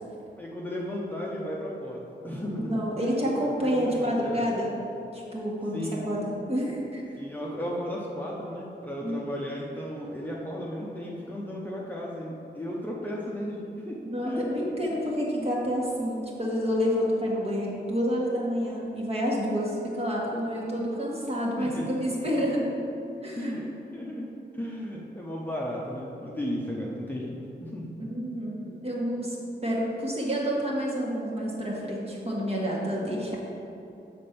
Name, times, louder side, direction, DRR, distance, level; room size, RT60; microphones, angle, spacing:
voice 1, 0.4-4.5 5.7-6.0 7.2-14.4 21.6-22.1 23.3-23.6 23.9-27.9, equal, 10° left, -4 dB, 0.8 m, -35 dB
voice 2, 2.6-4.8 5.1-7.0 9.0-9.1 14.1-22.7 23.2-23.5 28.0-29.4 29.6-33.4, equal, 35° right, -4 dB, 1.6 m, -29 dB
7.4 x 4.3 x 6.8 m, 2.8 s
wide cardioid pair, 130°, 18 cm